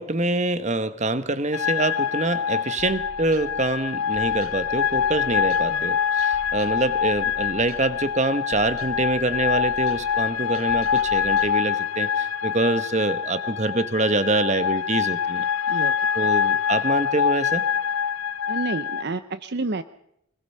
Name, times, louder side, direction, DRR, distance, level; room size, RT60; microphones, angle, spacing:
voice 1, 0.0-15.5 16.1-17.6, right 2 dB, 30° right, 12 dB, 1.2 m, -25 dB
sound 1, 1.5-19.0, left 8 dB, 75° left, 0.7 m, -25 dB
sound 2, 2.8-11.5, right 2 dB, 80° right, 1.5 m, -45 dB
voice 2, 15.7-16.3 18.5-19.8, right 3 dB, 50° right, 11 dB, 0.7 m, -30 dB
24.5 x 21.0 x 5.6 m, 0.78 s
head